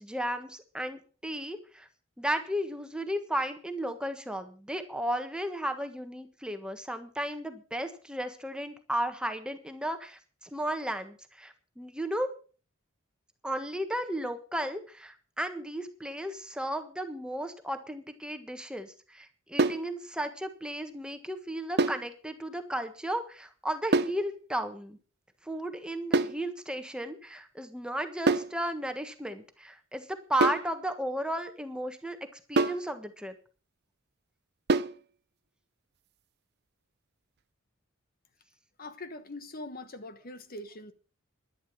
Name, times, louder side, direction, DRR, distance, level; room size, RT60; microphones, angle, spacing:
voice 1, 0.0-1.9 2.2-10.2 10.5-12.3 13.4-25.0 25.4-32.2 32.5-33.3, right 1 dB, 5° right, 1.4 m, -34 dB
sound 1, 19.6-19.9 21.8-22.1 23.9-24.2 26.1-26.4 28.3-28.6 30.4-30.7 32.6-32.9 34.7-35.0, right 3 dB, 50° right, 0.7 m, -26 dB
voice 2, 38.8-40.9, left 2 dB, 45° left, 1.2 m, -42 dB
11.5 x 11.0 x 6.1 m
head